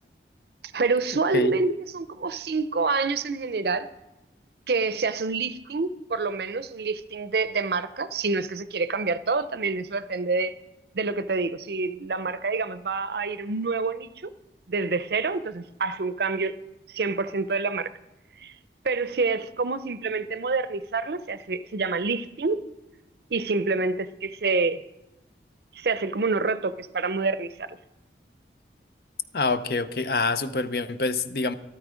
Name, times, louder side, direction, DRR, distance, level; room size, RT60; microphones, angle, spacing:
voice 1, 0.7-3.9 4.7-10.5 10.9-14.3 14.7-16.5 16.9-17.9 18.4-18.5 18.8-22.6 23.3-24.8 25.8-27.7, right 4 dB, 65° right, 0.6 m, -27 dB
voice 2, 29.3-31.6, left 3 dB, 60° left, 0.6 m, -26 dB
13.0 x 13.0 x 5.0 m
head